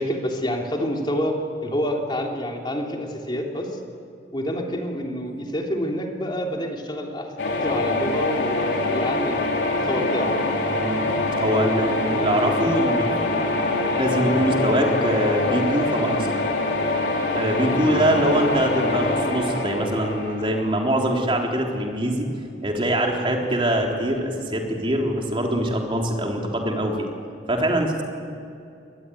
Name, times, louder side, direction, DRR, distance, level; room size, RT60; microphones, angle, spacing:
voice 1, 0.0-3.8 4.3-10.4 12.1-12.5 17.6-17.9, equal, 25° left, 1 dB, 3.1 m, -28 dB
sound 1, 7.4-21.2, left 2 dB, 75° left, 3.6 m, -24 dB
voice 2, 10.8-11.1 11.4-13.3 14.0-16.3 17.3-22.3 22.6-27.1 27.5-28.0, right 1 dB, 30° right, 1 dB, 3.7 m, -23 dB
24.5 x 20.5 x 9.6 m, 2.4 s
head